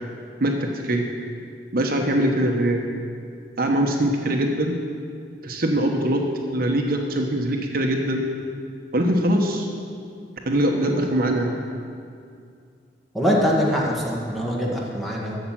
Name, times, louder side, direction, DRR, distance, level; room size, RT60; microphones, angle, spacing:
voice 1, 0.4-1.1 1.7-2.8 3.6-4.8 5.4-6.2 6.5-8.2 8.9-9.7 10.5-11.5, right 1 dB, 55° right, 2 dB, 1.0 m, -22 dB
voice 2, 13.1-15.4, equal, ahead, -5 dB, 1.9 m, -23 dB
13.0 x 7.1 x 7.5 m, 2.3 s
head